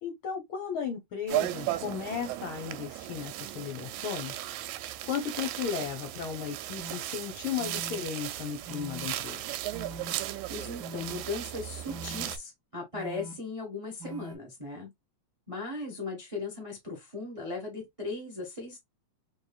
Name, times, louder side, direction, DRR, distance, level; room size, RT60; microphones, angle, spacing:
voice 1, 0.0-4.3 5.1-9.4, left 7 dB, 70° left, 1.2 m, -35 dB
sound 1, 1.3-12.4, right 14 dB, 80° right, 1.8 m, -36 dB
sound 2, 6.8-6.9 7.6-8.0 8.7-9.1 9.7-10.1 10.8-11.2 11.9-12.3 12.9-13.3 14.0-14.4, equal, 45° right, 1.6 m, -43 dB
voice 2, 10.5-14.9 15.5-18.8, left 3 dB, 65° right, 0.3 m, -37 dB
4.7 x 2.6 x 2.3 m
omnidirectional pair, 3.3 m